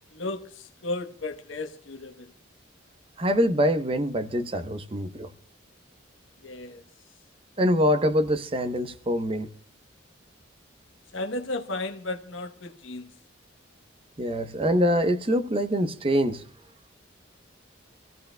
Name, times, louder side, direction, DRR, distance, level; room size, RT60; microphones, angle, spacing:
voice 1, 0.1-2.3 6.4-6.8 11.1-13.1, left 2 dB, 70° left, 1.0 m, -34 dB
voice 2, 3.2-5.3 7.6-9.5 14.2-16.4, equal, 30° right, 0.8 m, -24 dB
26.5 x 15.0 x 2.2 m
head